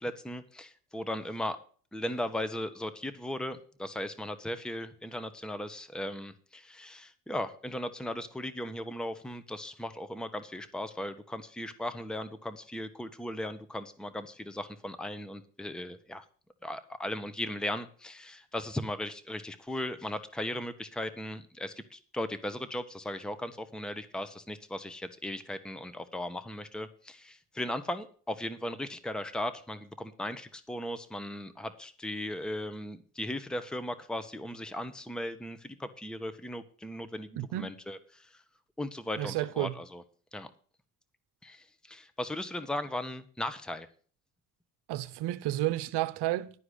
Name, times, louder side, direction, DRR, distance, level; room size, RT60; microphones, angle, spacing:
voice 1, 0.0-1.6 1.9-16.2 16.6-38.4 38.8-40.0 40.3-40.5 41.4-43.9, left 1 dB, ahead, 1.0 m, -37 dB
voice 2, 37.4-37.7 39.2-39.7 44.9-46.5, right 15 dB, 65° right, 0.9 m, -31 dB
11.5 x 4.8 x 8.2 m
hypercardioid pair, 70°, 44 cm